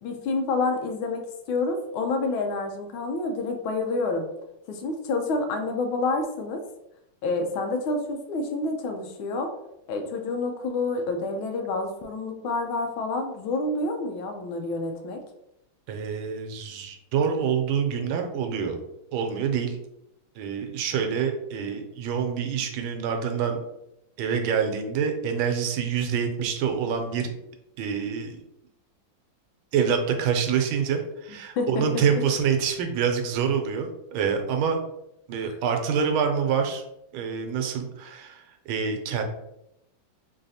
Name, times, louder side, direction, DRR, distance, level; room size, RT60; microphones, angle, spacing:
voice 1, 0.0-4.3 4.7-6.6 7.2-9.5 9.9-15.2 31.6-31.8, left 3 dB, 80° left, 5 dB, 1.5 m, -28 dB
voice 2, 15.9-18.8 19.1-19.8 20.4-23.6 24.2-27.3 27.8-28.4 29.7-34.8 35.3-36.8 37.1-39.2, right 7 dB, 85° right, 4 dB, 1.5 m, -26 dB
3.9 x 3.2 x 2.7 m, 0.84 s
omnidirectional pair, 2.2 m